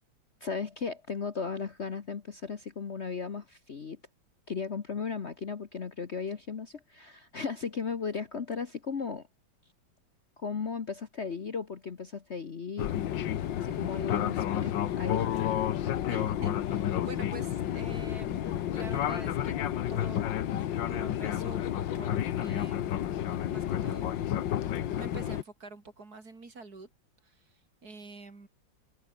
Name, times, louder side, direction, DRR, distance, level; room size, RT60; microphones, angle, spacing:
voice 1, 0.4-4.0 4.5-9.3 10.4-12.9 13.6-15.3, left 5 dB, 40° left, 1.3 m, -36 dB
Fixed-wing aircraft airplane, 12.8-25.4, left 11 dB, 75° left, 1.7 m, -31 dB
voice 2, 16.1-19.6 19.9-20.3 20.9-23.2 23.5-24.1 25.0-26.9 27.2-28.5, right 3 dB, 50° right, 4.2 m, -46 dB
omnidirectional pair, 2.1 m